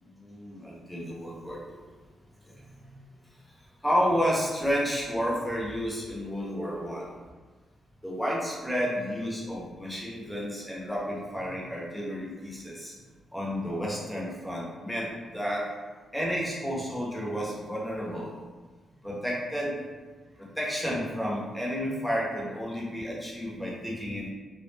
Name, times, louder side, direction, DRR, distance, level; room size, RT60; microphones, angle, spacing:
voice 1, 0.0-1.8 2.5-2.9 3.8-7.2 8.0-12.9 13.3-15.7 16.1-18.4 19.0-19.8 20.4-24.3, equal, 5° left, -5 dB, 0.7 m, -31 dB
2.3 x 2.1 x 3.2 m, 1.4 s
cardioid pair, 95°, 0 cm